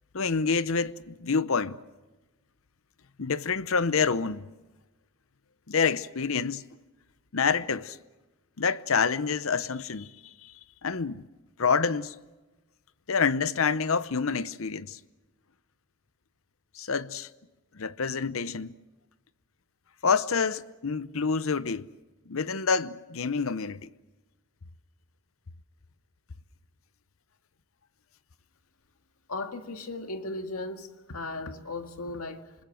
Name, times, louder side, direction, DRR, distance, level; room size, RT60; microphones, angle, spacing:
voice 1, 0.1-1.8 3.2-4.4 5.7-6.6 7.3-8.0 8.6-10.1 10.4-10.5 10.8-11.3 11.6-12.2 13.1-15.0 16.8-17.3 17.7-18.7 20.0-21.9 22.3-23.9, left 5 dB, 70° left, 0.8 m, -27 dB
voice 2, 29.3-32.5, left 2 dB, 90° left, 1.9 m, -36 dB
27.0 x 20.5 x 7.7 m
head